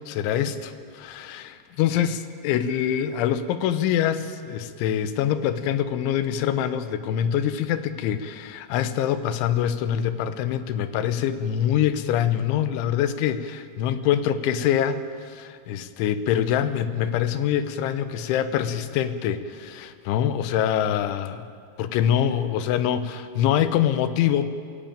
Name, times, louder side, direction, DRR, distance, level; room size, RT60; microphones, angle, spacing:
voice 1, 0.1-15.0 15.3-21.5 21.8-24.5, left 10 dB, 85° left, 11 dB, 3.3 m, -24 dB
22.5 x 16.0 x 9.0 m, 2.2 s
omnidirectional pair, 5.4 m